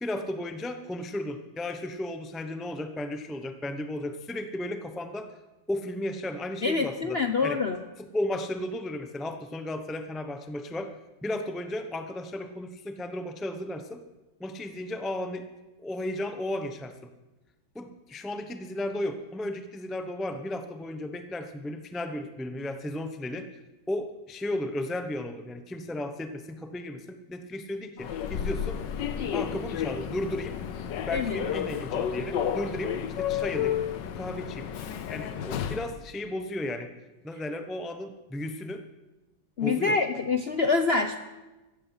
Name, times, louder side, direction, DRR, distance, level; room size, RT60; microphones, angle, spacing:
voice 1, 0.0-5.3 5.7-7.6 8.0-10.9 11.2-14.0 14.4-15.5 15.8-16.9 17.7-23.5 23.9-28.8 29.3-30.5 31.0-33.8 34.2-34.7 35.1-36.9 37.2-38.8 39.6-40.0, left 1 dB, ahead, 7 dB, 0.4 m, -34 dB
voice 2, 6.6-7.8 31.1-31.4 39.6-41.2, left 4 dB, 55° left, 7 dB, 0.7 m, -26 dB
Human voice / Subway metro underground, 28.0-35.9, left 9 dB, 70° left, 1.5 m, -32 dB
15.5 x 15.0 x 5.7 m, 1.1 s
omnidirectional pair, 2.1 m